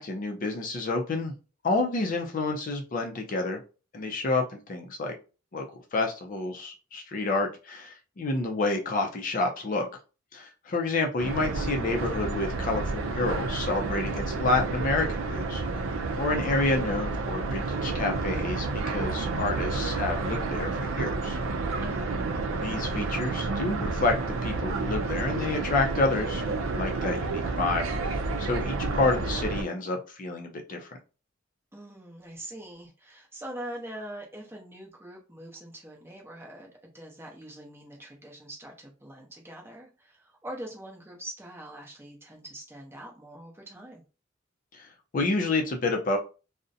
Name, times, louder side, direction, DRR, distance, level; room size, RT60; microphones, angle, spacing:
voice 1, 0.0-1.3 1.6-3.6 3.9-5.1 5.5-5.7 5.9-9.9 10.3-21.4 22.6-24.1 24.4-30.9 44.7-44.9 45.1-46.2, left 2 dB, 45° left, 3 dB, 0.4 m, -29 dB
sound 1, 11.2-29.6, right 3 dB, 85° right, 0.4 m, -30 dB
voice 2, 21.8-22.2 31.7-44.0, right 1 dB, 10° right, -1 dB, 0.6 m, -43 dB
2.5 x 2.0 x 2.6 m, 0.33 s
head